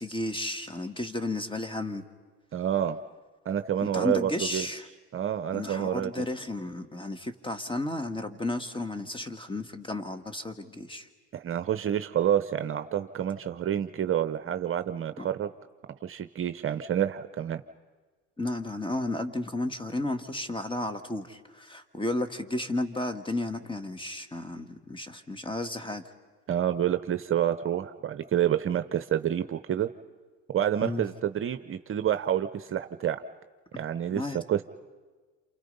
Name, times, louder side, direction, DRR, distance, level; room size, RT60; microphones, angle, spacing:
voice 1, 0.0-2.0 3.8-4.9 5.5-11.1 15.2-15.3 18.4-26.0 30.8-31.1 33.7-33.8 34.1-34.4, left 2 dB, 15° left, 9 dB, 1.9 m, -33 dB
voice 2, 2.5-3.0 3.4-4.7 5.1-6.3 11.3-15.5 16.0-17.6 26.5-29.9 30.5-33.2 33.8-34.6, right 10 dB, 40° right, 11 dB, 0.9 m, -28 dB
28.5 x 28.0 x 5.5 m, 1.4 s
hypercardioid pair, 80°, 34 cm